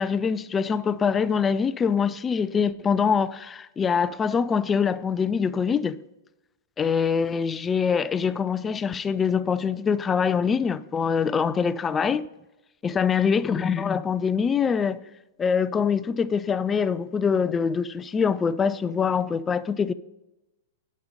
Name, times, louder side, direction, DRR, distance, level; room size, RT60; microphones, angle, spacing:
voice 1, 0.0-6.0 6.8-12.3 12.8-15.0 15.4-19.9, left 6 dB, 20° left, 0.3 m, -24 dB
11.5 x 5.3 x 5.1 m
figure-of-eight pair, 105°, 0 cm